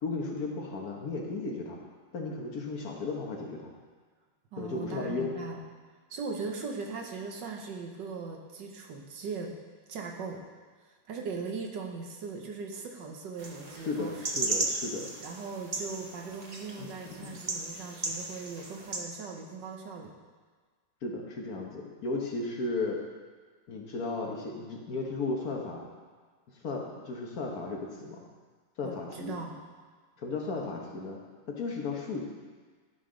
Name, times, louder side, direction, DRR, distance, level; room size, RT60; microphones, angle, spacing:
voice 1, 0.0-1.8 2.1-3.7 4.6-5.3 13.8-15.1 16.8-17.4 21.0-23.0 23.7-25.9 26.6-28.2 28.8-29.3 30.2-31.2 31.5-32.2, left 3 dB, 55° left, 0 dB, 1.4 m, -35 dB
voice 2, 4.5-5.6 6.1-9.5 9.9-10.4 11.1-14.2 15.2-20.1 28.8-29.6, right 4 dB, 75° right, 1 dB, 1.6 m, -39 dB
sound 1, 13.4-19.0, right 3 dB, 50° right, 0.4 m, -36 dB
12.0 x 5.5 x 3.8 m, 1.5 s
omnidirectional pair, 2.0 m